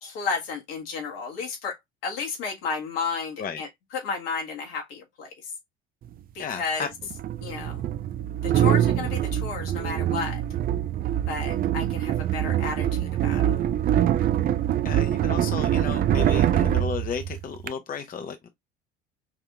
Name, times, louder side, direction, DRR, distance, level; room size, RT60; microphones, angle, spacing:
voice 1, 0.0-1.8 2.0-5.3 6.3-6.9 7.4-7.9 8.4-10.4 11.3-13.6, left 5 dB, 65° left, 1.6 m, -32 dB
sound 1, 6.0-6.1 7.1-17.7, right 11 dB, 30° right, 0.4 m, -24 dB
voice 2, 6.4-6.9 14.8-18.5, left 6 dB, 25° left, 0.7 m, -33 dB
5.8 x 2.8 x 2.3 m
figure-of-eight pair, 60°, 32 cm